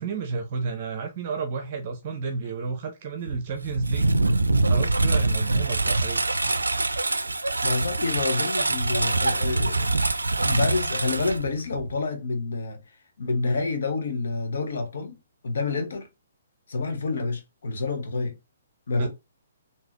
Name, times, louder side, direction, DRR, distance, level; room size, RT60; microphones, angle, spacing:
voice 1, 0.0-4.1 4.6-6.2 19.0-19.1, right 4 dB, 40° right, 0.6 m, -31 dB
Engine, 3.3-12.0, right 2 dB, 80° right, 0.3 m, -24 dB
voice 2, 7.6-9.9 10.4-12.8 13.2-15.2 15.4-16.1 16.7-18.4 18.9-19.1, left 3 dB, 60° left, 1.0 m, -28 dB
3.9 x 2.7 x 2.9 m
figure-of-eight pair, 125°, 0 cm